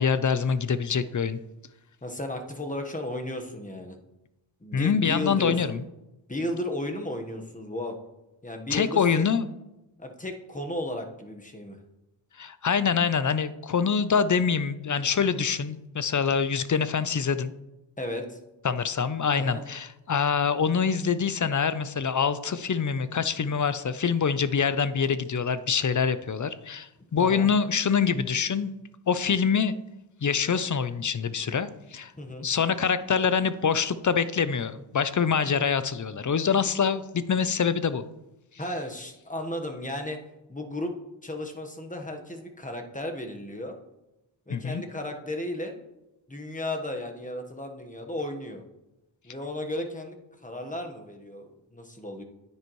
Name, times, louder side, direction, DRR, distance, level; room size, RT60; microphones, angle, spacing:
voice 1, 0.0-1.4 4.7-5.8 8.7-9.5 12.4-17.5 18.6-28.7 29.1-29.7 30.2-32.1 32.4-38.0 44.5-44.8, left 6 dB, 40° left, 14 dB, 0.6 m, -25 dB
voice 2, 2.0-4.0 4.6-5.8 6.3-8.0 8.4-9.2 10.0-11.8 18.0-18.4 19.4-19.6 27.2-27.5 32.1-32.5 38.6-40.2 40.5-40.9 41.2-43.7 44.5-45.7 46.3-48.6 49.2-50.2 50.4-52.2, left 1 dB, 15° left, 3 dB, 1.3 m, -34 dB
9.7 x 9.6 x 3.1 m, 0.96 s
cardioid pair, 65°, 47 cm